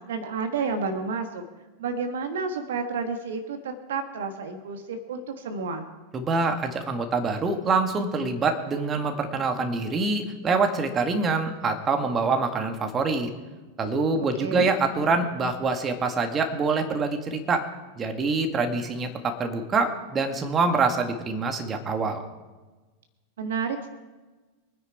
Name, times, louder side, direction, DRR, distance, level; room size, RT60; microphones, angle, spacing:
voice 1, 0.0-1.4 1.8-5.9 14.4-14.7 23.4-23.9, right 4 dB, 60° right, 6 dB, 1.4 m, -30 dB
voice 2, 6.1-13.3 13.8-17.7 18.0-22.3, right 4 dB, 25° right, 5 dB, 1.8 m, -25 dB
24.0 x 9.8 x 4.6 m, 1.2 s
figure-of-eight pair, 90°, 0 cm